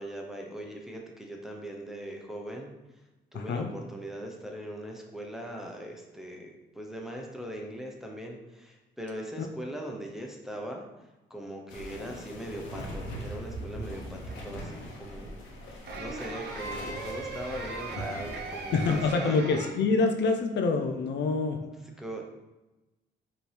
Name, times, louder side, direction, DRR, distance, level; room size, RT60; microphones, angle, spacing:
voice 1, 0.0-2.7 3.3-10.8 11.3-15.4 15.7-19.4 21.8-22.2, equal, ahead, 0 dB, 0.8 m, -40 dB
voice 2, 3.3-3.7 18.7-21.6, left 4 dB, 70° left, 5 dB, 0.5 m, -26 dB
sound 1, 11.7-19.1, equal, 85° left, 1.0 m, -41 dB
sound 2, 13.9-14.8 15.8-19.7, right 3 dB, 60° right, 0.8 m, -39 dB
5.0 x 3.0 x 3.4 m, 1.1 s
cardioid pair, 85°, 19 cm